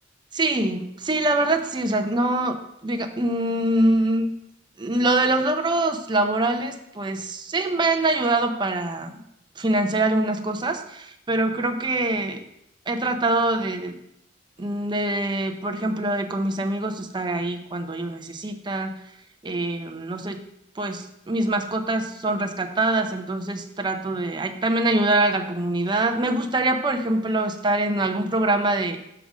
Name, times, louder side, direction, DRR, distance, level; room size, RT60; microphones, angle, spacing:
voice 1, 0.3-4.3 4.8-9.2 9.6-12.4 12.9-14.0 14.6-19.0 19.4-20.4 20.8-29.0, right 2 dB, 25° right, 4 dB, 0.6 m, -24 dB
6.7 x 3.7 x 6.1 m, 0.80 s
head